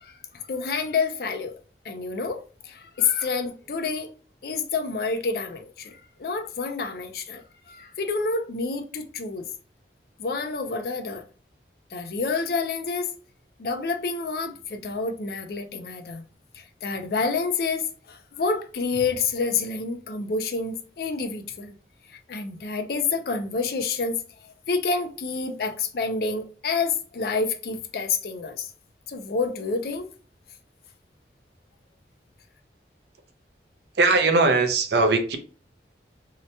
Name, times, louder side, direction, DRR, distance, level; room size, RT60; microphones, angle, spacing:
voice 1, 0.0-1.5 1.8-4.1 4.4-9.5 10.2-11.2 11.9-13.1 13.6-16.3 16.5-21.7 22.1-28.7 29.1-30.1, left 4 dB, 55° left, 0.4 m, -28 dB
voice 2, 34.0-35.4, right 3 dB, 65° right, 0.5 m, -20 dB
2.8 x 2.1 x 2.6 m
head